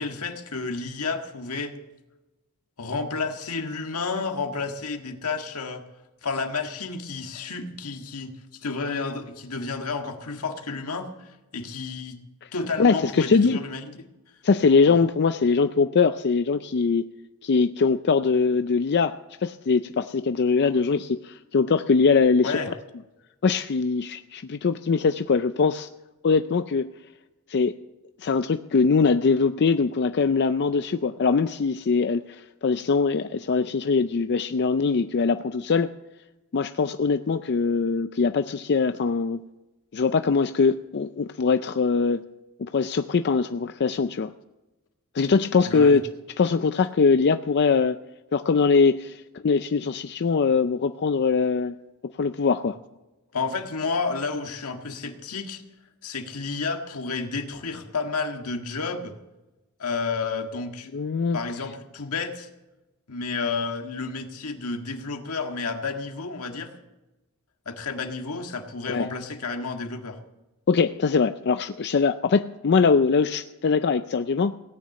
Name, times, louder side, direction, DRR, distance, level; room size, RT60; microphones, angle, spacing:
voice 1, 0.0-1.7 2.8-5.8 6.2-12.2 12.5-13.8 14.9-15.0 22.4-22.7 45.6-46.0 53.3-55.6 56.0-59.2 59.8-60.9 61.3-62.5 63.1-66.7 67.6-70.2, left 4 dB, 80° left, 5 dB, 1.7 m, -31 dB
voice 2, 12.8-13.6 14.4-17.1 17.4-19.1 19.4-22.6 23.4-25.9 26.2-26.9 27.5-27.8 28.2-35.9 36.5-39.4 39.9-42.2 42.6-44.3 45.1-46.0 46.4-48.0 48.3-51.8 52.2-52.8 60.9-61.4 68.9-69.1 70.7-74.6, left 4 dB, 50° left, 10 dB, 0.4 m, -22 dB
17.5 x 9.5 x 7.5 m, 1.0 s
head